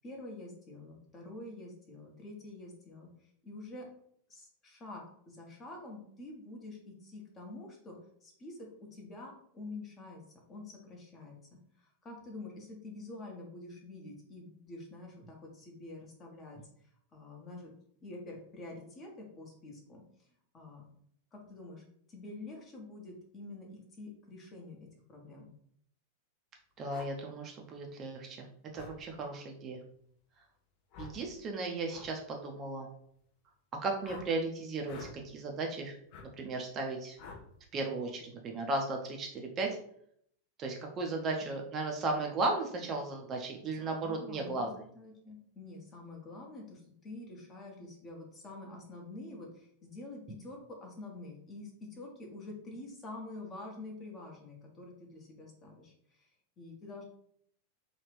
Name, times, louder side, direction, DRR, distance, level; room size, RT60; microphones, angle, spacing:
voice 1, 0.0-3.9 4.3-10.2 10.5-11.4 11.8-16.6 17.1-17.7 18.0-20.3 20.5-20.8 21.3-21.8 22.1-25.5 41.4-41.5 43.8-44.7 44.9-56.3 56.6-57.1, left 2 dB, 25° left, 0 dB, 0.9 m, -47 dB
voice 2, 26.8-29.8 31.0-32.9 33.8-35.9 36.4-37.2 37.7-39.8 40.6-44.7, right 3 dB, 30° right, 2 dB, 0.5 m, -35 dB
sound 1, 26.9-27.1 28.7-29.0 30.9-31.2 31.9-32.1 34.0-34.3 34.8-35.2 36.1-36.3 37.2-37.5, left 5 dB, 45° left, 0.5 m, -47 dB
2.9 x 2.4 x 3.3 m, 0.67 s
figure-of-eight pair, 90°, 0 cm